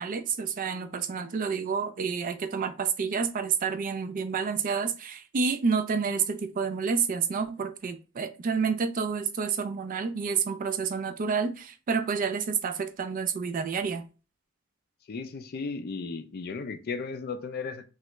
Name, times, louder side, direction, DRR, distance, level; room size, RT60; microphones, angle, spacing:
voice 1, 0.0-14.0, right 5 dB, 40° right, 0.3 m, -29 dB
voice 2, 15.1-17.9, left 4 dB, 50° left, 0.4 m, -35 dB
3.1 x 2.4 x 3.0 m
head